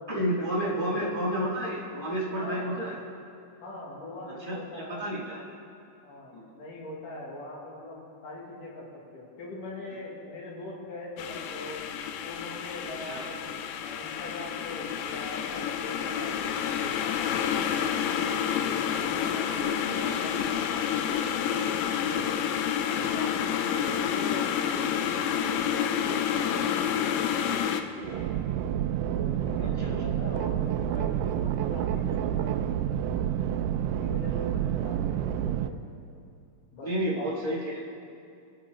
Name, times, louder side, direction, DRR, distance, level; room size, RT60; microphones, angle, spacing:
voice 1, 0.1-3.0 4.5-5.4 6.3-6.5 13.0-13.3 18.6-18.9 20.4-20.5 21.9-22.5 29.6-29.9 34.3-34.4 36.8-37.8, equal, 25° left, -6 dB, 0.6 m, -31 dB
voice 2, 0.6-1.1 2.4-2.7 3.6-5.1 6.0-11.8 12.2-13.5 13.8-17.3 17.7-20.8 21.4-21.8 22.8-28.4 29.1-32.5 33.1-33.3 34.0-35.8 36.7-36.9 37.2-37.3, left 2 dB, 70° left, -4 dB, 3.7 m, -42 dB
sound 1, 11.2-27.8, left 8 dB, 85° left, 2.4 m, -29 dB
sound 2, 28.0-35.7, right 10 dB, 80° right, 2.0 m, -29 dB
24.5 x 9.1 x 3.7 m, 2.5 s
omnidirectional pair, 4.0 m